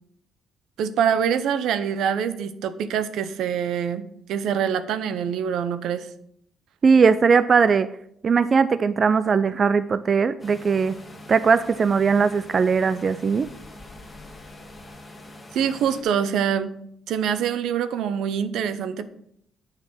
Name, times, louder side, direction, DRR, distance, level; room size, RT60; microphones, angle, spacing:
voice 1, 0.8-6.1 15.5-16.7 17.1-19.0, right 8 dB, 80° right, 12 dB, 0.6 m, -25 dB
voice 2, 6.8-7.9 8.2-11.0 11.3-13.5, right 5 dB, 45° right, 14 dB, 0.4 m, -19 dB
sound 1, 10.4-16.0, left 2 dB, 15° left, 2.1 m, -44 dB
7.8 x 5.8 x 6.2 m, 0.73 s
cardioid pair, 90°, 0 cm